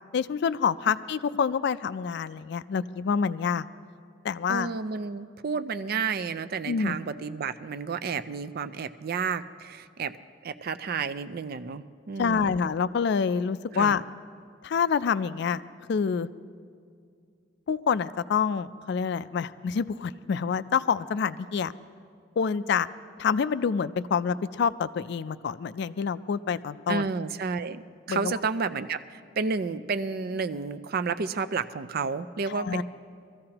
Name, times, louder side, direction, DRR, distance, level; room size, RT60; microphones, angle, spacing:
voice 1, 0.1-3.7 4.2-4.7 6.7-7.0 12.2-14.0 14.6-15.6 15.9-16.3 17.7-21.7 22.4-22.9 23.2-27.1 28.1-28.3 32.5-32.8, left 6 dB, 65° left, 15 dB, 0.4 m, -27 dB
voice 2, 4.5-10.1 10.4-12.6 13.7-14.0 26.9-27.8 28.1-32.8, right 5 dB, 55° right, 12 dB, 0.4 m, -31 dB
23.0 x 14.5 x 2.9 m, 2.2 s
head